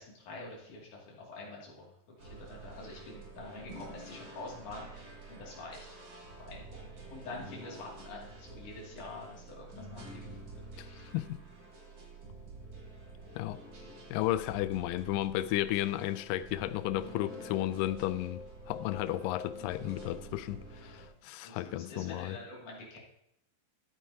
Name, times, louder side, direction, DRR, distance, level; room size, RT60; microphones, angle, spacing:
voice 1, 0.0-1.9 2.2-5.9 6.4-10.6 13.9-14.0 21.4-23.0, left 2 dB, 60° left, 4.0 m, -46 dB
sound 1, 2.2-21.1, right 1 dB, 45° right, 3.6 m, -48 dB
voice 2, 14.1-18.4 18.7-22.4, left 14 dB, 85° left, 2.2 m, -33 dB
14.0 x 9.3 x 2.9 m
omnidirectional pair, 4.0 m